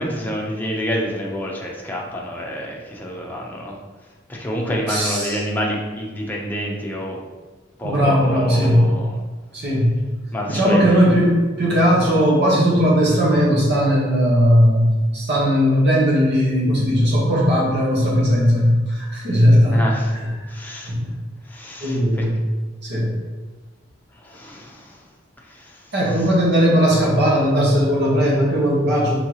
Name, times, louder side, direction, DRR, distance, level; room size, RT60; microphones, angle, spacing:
voice 1, 0.0-3.8 4.3-7.2 7.8-9.2 10.3-11.0 19.7-20.2 20.4-20.9 21.4-22.3 24.2-25.0 25.5-25.9 27.2-27.5, equal, 10° left, -3 dB, 0.7 m, -28 dB
voice 2, 4.9-5.4 7.8-8.9 9.5-9.9 10.5-19.8 20.1-20.3 20.9-21.1 21.8-22.3 22.8-23.1 25.9-29.2, equal, 60° right, -5 dB, 1.4 m, -17 dB
4.5 x 3.8 x 3.0 m, 1.2 s
head